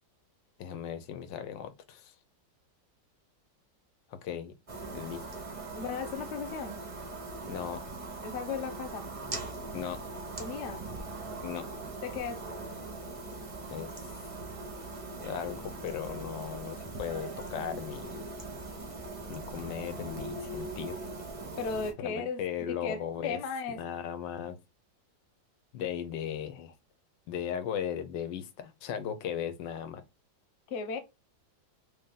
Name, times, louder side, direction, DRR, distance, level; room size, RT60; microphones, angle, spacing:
voice 1, 0.6-2.1 4.1-4.5 4.9-5.2 7.5-7.8 9.7-10.0 11.4-11.6 13.7-13.9 15.1-18.2 19.3-21.1 22.0-23.4 23.7-24.6 25.7-26.7 27.3-30.0, left 9 dB, 90° left, 1.3 m, -37 dB
sound 1, 4.7-21.9, right 3 dB, 45° right, 0.4 m, -41 dB
voice 2, 5.7-6.8 8.2-9.1 10.4-10.8 12.0-12.4 21.6-22.4 22.7-23.8 30.7-31.0, left 5 dB, 60° left, 0.7 m, -36 dB
3.3 x 2.8 x 3.7 m
omnidirectional pair, 1.9 m